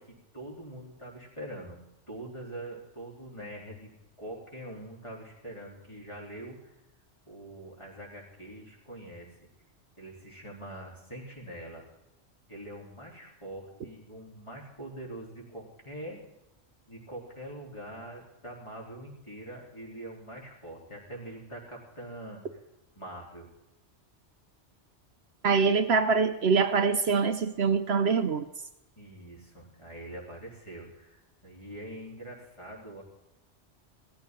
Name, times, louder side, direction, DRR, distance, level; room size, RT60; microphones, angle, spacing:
voice 1, 0.0-1.8 2.1-3.9 4.2-6.7 7.3-9.3 10.0-11.9 12.5-16.2 16.9-22.4 23.0-23.5 29.0-33.0, right 1 dB, 25° left, -3 dB, 4.1 m, -44 dB
voice 2, 25.4-28.5, right 5 dB, 65° right, 9 dB, 0.9 m, -24 dB
17.5 x 14.5 x 3.9 m, 0.92 s
omnidirectional pair, 1.2 m